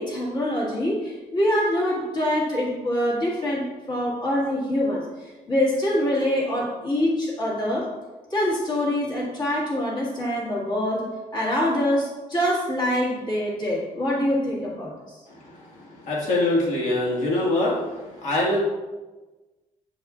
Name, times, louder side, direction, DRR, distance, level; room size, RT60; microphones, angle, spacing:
voice 1, 0.0-7.9 8.3-11.0 11.3-15.2, left 1 dB, 35° left, -5 dB, 1.8 m, -25 dB
voice 2, 16.1-17.8 18.2-18.6, left 2 dB, 55° left, -4 dB, 1.9 m, -22 dB
8.2 x 4.6 x 2.5 m, 1.2 s
cardioid pair, 180°, 14 cm